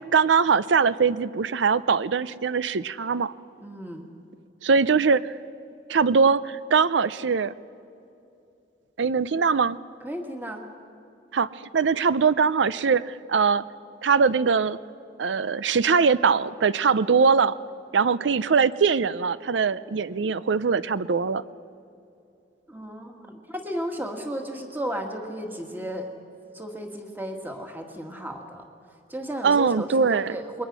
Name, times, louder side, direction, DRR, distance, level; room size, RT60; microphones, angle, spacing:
voice 1, 0.1-3.3 4.6-5.3 5.9-7.5 9.0-9.8 11.3-11.5 11.7-13.6 14.0-14.8 15.2-17.6 17.9-21.4 29.4-30.4, right 5 dB, 85° right, 17 dB, 0.5 m, -22 dB
voice 2, 3.6-4.0 10.0-10.6 22.7-26.1 26.5-28.6 29.1-30.7, right 1 dB, 10° right, 3 dB, 1.8 m, -34 dB
27.5 x 21.5 x 6.2 m, 2.6 s
head